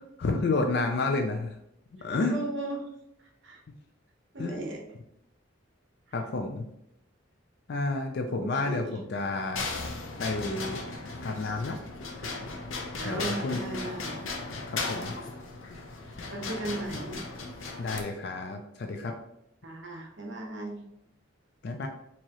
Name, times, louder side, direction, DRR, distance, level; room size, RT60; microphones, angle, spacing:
voice 1, 0.2-1.5 1.9-2.4 3.7-3.8 4.4-4.6 6.1-6.7 7.7-9.7 10.2-10.8 11.2-11.8 13.0-13.6 14.7-15.1 17.8-19.1 21.6-21.9, left 3 dB, 55° left, 4 dB, 0.4 m, -30 dB
voice 2, 2.3-2.8 3.4-3.6 4.3-4.8 8.4-8.9 12.9-14.2 16.3-17.2 19.6-20.8, right 2 dB, 65° right, 1 dB, 0.9 m, -36 dB
sound 1, 9.6-18.0, left 3 dB, 90° left, 0.7 m, -36 dB
4.6 x 2.9 x 2.9 m, 0.78 s
head